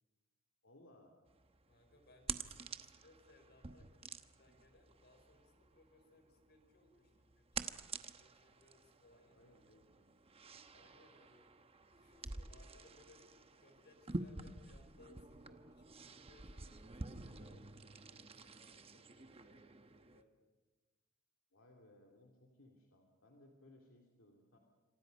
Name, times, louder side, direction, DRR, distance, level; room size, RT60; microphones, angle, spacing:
voice 1, 0.6-1.2 9.1-10.1 21.5-24.6, left 1 dB, 70° left, 0 dB, 2.9 m, -64 dB
sound 1, 1.3-20.2, right 4 dB, 30° right, 1.0 m, -49 dB
voice 2, 1.7-7.8 8.1-9.7 10.7-11.5 12.0-17.7 17.9-20.3, left 2 dB, 55° left, 5 dB, 5.3 m, -67 dB
27.5 x 26.5 x 5.4 m, 1.2 s
head